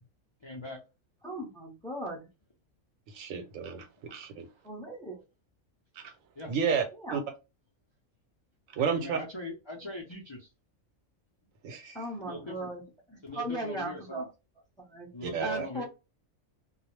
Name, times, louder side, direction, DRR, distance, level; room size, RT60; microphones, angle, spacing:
voice 1, 0.4-0.8 6.4-6.5 8.9-10.5 12.2-12.7 13.2-14.2 15.1-15.8, left 2 dB, 45° left, 0.3 m, -41 dB
voice 2, 1.2-2.3 4.6-5.2 7.0-7.2 11.9-12.8 13.1-14.3 14.8-15.1 15.4-15.8, right 1 dB, 5° left, 0.6 m, -37 dB
voice 3, 3.1-4.5 6.0-6.1 6.5-6.9 7.1-7.2 8.7-9.2 11.6-12.0 15.2-15.7, right 6 dB, 80° right, 1.0 m, -31 dB
2.3 x 2.1 x 3.0 m
omnidirectional pair, 1.4 m